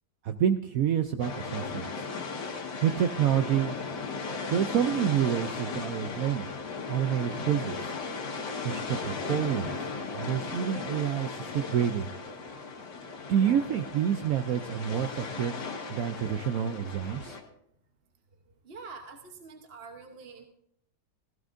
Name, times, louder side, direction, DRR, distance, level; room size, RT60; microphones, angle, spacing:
voice 1, 0.2-2.1 2.8-3.8 4.5-6.5 6.9-7.9 8.6-12.1 13.3-15.6 15.9-17.4, right 9 dB, 70° right, 8 dB, 0.8 m, -28 dB
sound 1, 1.2-17.4, left 4 dB, 70° left, 2.0 m, -36 dB
voice 2, 18.6-20.5, right 4 dB, 40° right, 4 dB, 1.0 m, -46 dB
16.0 x 15.5 x 2.6 m, 0.70 s
omnidirectional pair, 2.0 m